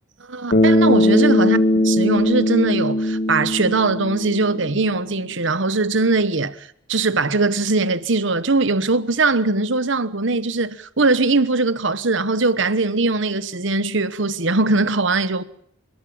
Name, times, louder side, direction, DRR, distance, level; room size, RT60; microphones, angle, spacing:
voice 1, 0.3-15.4, right 3 dB, 60° right, 1.1 m, -21 dB
Bass guitar, 0.5-4.9, left 1 dB, 50° left, 2.1 m, -19 dB
29.5 x 13.5 x 8.8 m
head